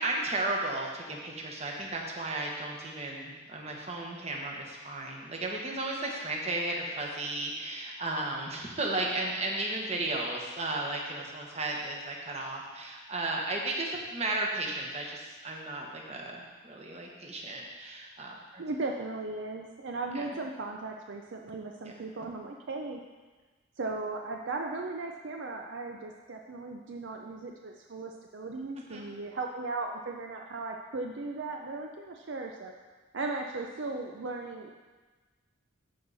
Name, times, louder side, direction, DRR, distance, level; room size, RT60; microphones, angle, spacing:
voice 1, 0.0-18.6 20.1-20.3 21.8-22.1 28.9-29.1, right 2 dB, 35° right, -1 dB, 1.3 m, -34 dB
voice 2, 18.6-23.0 23.8-32.7 33.1-34.7, right 3 dB, 65° right, 2 dB, 0.5 m, -37 dB
13.5 x 4.8 x 4.1 m, 1.3 s
head